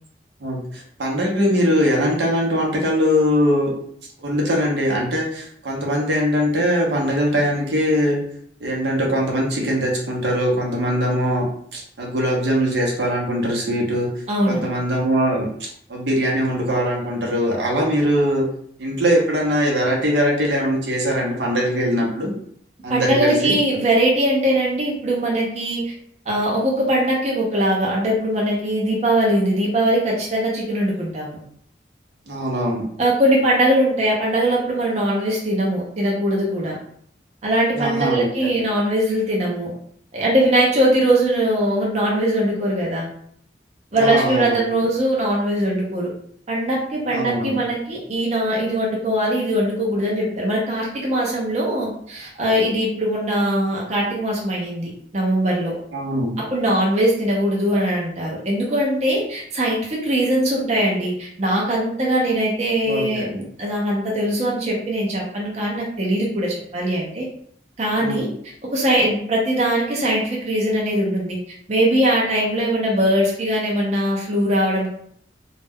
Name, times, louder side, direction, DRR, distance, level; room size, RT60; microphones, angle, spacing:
voice 1, 0.4-3.7 4.2-8.2 8.6-11.5 11.7-18.5 18.8-22.3 22.8-23.5 32.3-32.8 37.8-38.6 43.9-44.8 47.1-47.6 55.9-56.4 62.9-63.3 68.0-68.2, equal, 75° right, -2 dB, 0.7 m, -21 dB
voice 2, 14.3-14.6 22.9-25.9 26.3-31.4 33.0-36.8 37.4-39.7 40.1-43.1 43.9-46.1 46.5-55.7 56.4-67.3 67.8-68.3 68.7-71.4 71.7-74.9, right 1 dB, 40° right, -3 dB, 0.6 m, -21 dB
2.3 x 2.1 x 3.5 m, 0.64 s
head